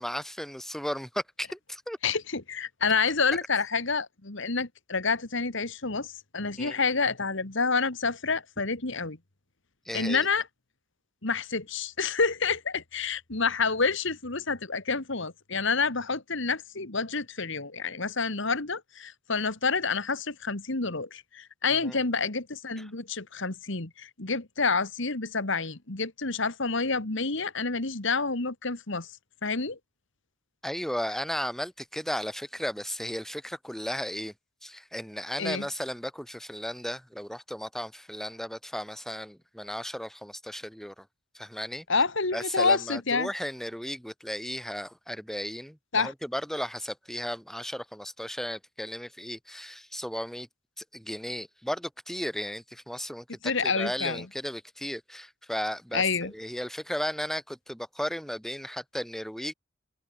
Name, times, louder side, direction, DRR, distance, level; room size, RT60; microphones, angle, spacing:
voice 1, 0.0-2.0 6.6-6.8 9.9-10.3 21.8-22.0 22.8-22.9 30.6-34.3 34.6-41.0 41.3-41.8 42.3-50.5 50.8-53.2 53.6-59.5, equal, ahead, 2.8 m, -35 dB
voice 2, 2.0-9.2 9.9-10.4 11.2-29.1 29.4-29.8 35.4-35.7 41.9-43.3 45.9-46.1 53.4-54.3 55.9-56.3, left 4 dB, 60° left, 2.0 m, -28 dB
head